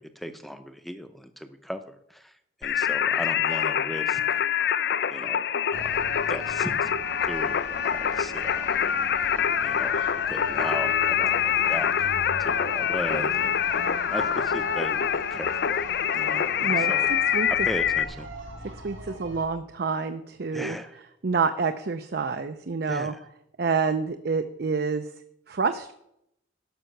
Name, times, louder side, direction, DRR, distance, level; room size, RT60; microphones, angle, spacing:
voice 1, 0.0-4.4 5.1-6.9 7.2-8.7 9.6-12.1 12.4-15.7 16.1-17.1 17.6-18.3 20.5-21.0 22.9-23.2, equal, ahead, 9 dB, 0.7 m, -37 dB
Singing, 2.6-18.0, left 8 dB, 55° left, 0.4 m, -25 dB
sound 1, 5.7-19.4, right 2 dB, 80° right, 3.0 m, -40 dB
voice 2, 16.6-16.9 17.3-17.5 18.8-20.8 21.2-23.1 23.6-25.1 25.5-25.9, right 5 dB, 55° right, 9 dB, 0.5 m, -27 dB
12.5 x 5.6 x 6.5 m, 0.79 s
head